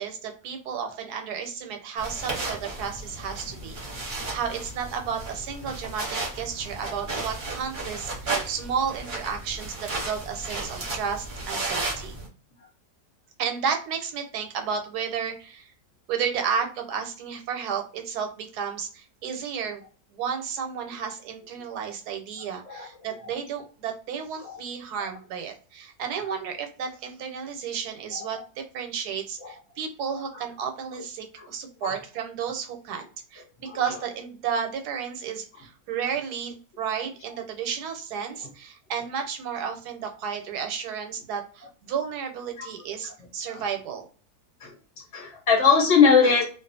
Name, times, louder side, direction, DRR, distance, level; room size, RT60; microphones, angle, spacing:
voice 1, 0.0-9.7 10.0-12.2 13.4-15.7 16.1-19.8 20.1-44.0, right 7 dB, 90° right, 5 dB, 1.2 m, -32 dB
sound 1, 2.0-12.3, right 3 dB, 40° right, 0.8 m, -34 dB
voice 2, 45.1-46.4, left 5 dB, 55° left, -1 dB, 1.0 m, -21 dB
2.4 x 2.4 x 2.6 m, 0.37 s
omnidirectional pair, 1.7 m